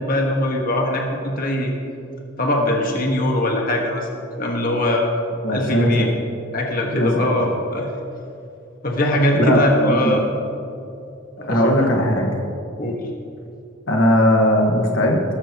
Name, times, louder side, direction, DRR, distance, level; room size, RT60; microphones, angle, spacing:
voice 1, 0.0-1.7 2.4-4.1 4.4-5.0 5.5-6.1 6.5-7.9 8.8-10.2 11.4-11.7 12.8-13.0, left 1 dB, 45° left, 0 dB, 1.6 m, -21 dB
voice 2, 5.4-6.1 6.9-7.1 7.4-7.5 9.3-10.2 11.5-12.4 13.9-15.2, equal, 65° left, 0 dB, 1.6 m, -18 dB
19.0 x 13.5 x 3.0 m, 2.6 s
head